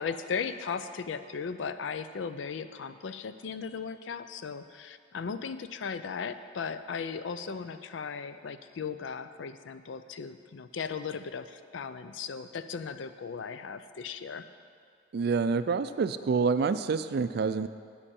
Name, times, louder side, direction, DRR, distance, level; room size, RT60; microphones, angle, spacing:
voice 1, 0.0-14.5, left 6 dB, 80° left, 11 dB, 0.4 m, -37 dB
voice 2, 15.1-17.7, right 5 dB, 60° right, 13 dB, 0.3 m, -27 dB
9.9 x 8.9 x 4.3 m, 2.3 s
head